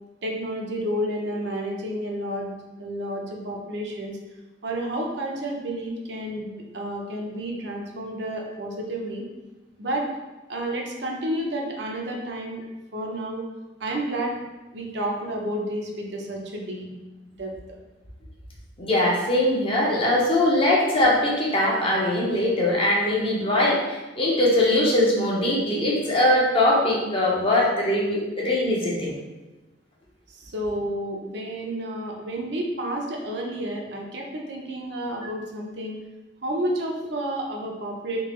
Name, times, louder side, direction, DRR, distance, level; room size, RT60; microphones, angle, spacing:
voice 1, 0.2-4.2 4.6-9.2 9.8-10.1 10.5-12.6 12.9-13.4 13.8-14.4 14.7-16.9 17.4-17.5 30.3-36.0 36.4-38.2, right 1 dB, 65° right, 0 dB, 0.6 m, -30 dB
voice 2, 18.8-29.1, left 1 dB, 30° left, -4 dB, 0.8 m, -21 dB
3.7 x 2.9 x 3.1 m, 1.1 s
head